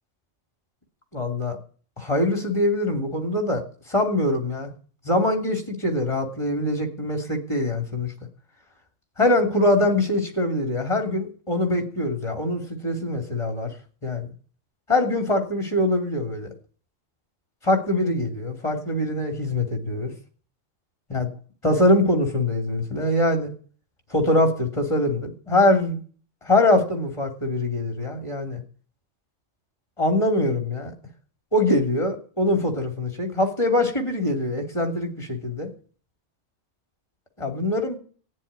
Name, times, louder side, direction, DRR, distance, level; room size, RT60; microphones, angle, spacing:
voice 1, 1.1-1.6 2.0-3.6 3.9-4.7 5.0-8.1 9.2-13.7 14.0-14.3 14.9-16.5 17.6-20.1 21.1-21.3 21.6-23.5 24.1-26.0 26.4-28.6 30.0-30.9 31.5-35.7 37.4-38.0, left 1 dB, 25° left, 3 dB, 3.2 m, -23 dB
19.0 x 7.5 x 9.8 m, 0.43 s
omnidirectional pair, 1.3 m